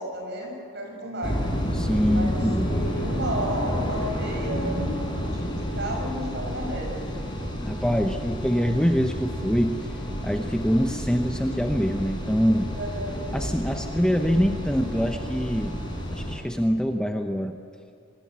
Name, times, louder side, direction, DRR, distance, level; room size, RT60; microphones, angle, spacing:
voice 1, 0.0-1.4 2.0-5.0 5.3-7.1 12.8-13.2, equal, 50° right, 1 dB, 6.7 m, -32 dB
sound 1, 1.2-16.4, equal, 20° left, 4.5 m, -30 dB
voice 2, 1.7-2.7 7.6-9.9 10.2-12.7 13.3-15.8 16.1-17.6, equal, 5° left, 4 dB, 0.8 m, -24 dB
25.5 x 20.0 x 8.3 m, 2.4 s
head